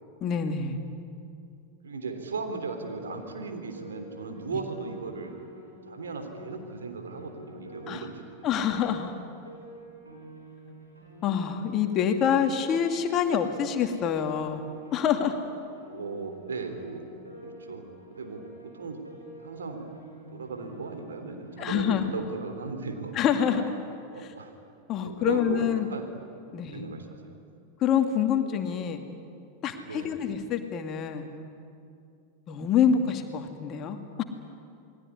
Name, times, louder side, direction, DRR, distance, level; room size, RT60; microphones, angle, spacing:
voice 1, 0.2-0.8 7.9-8.1 8.4-9.1 11.2-14.6 14.9-15.3 21.6-22.1 23.1-23.6 24.2-24.3 24.9-25.9 26.5-26.8 27.8-29.0 29.6-31.3 32.5-34.2, left 8 dB, 35° left, 6 dB, 2.4 m, -26 dB
voice 2, 1.8-5.3 5.9-8.2 15.9-17.0 17.4-19.0 19.4-19.8 20.3-23.1 24.1-24.5 25.0-26.1 26.7-27.4 29.8-30.1, right 4 dB, 70° right, 5 dB, 3.4 m, -37 dB
Piano, 2.9-22.0, equal, 85° right, 5.9 m, -48 dB
28.5 x 21.0 x 9.8 m, 2.5 s
figure-of-eight pair, 90°, 0 cm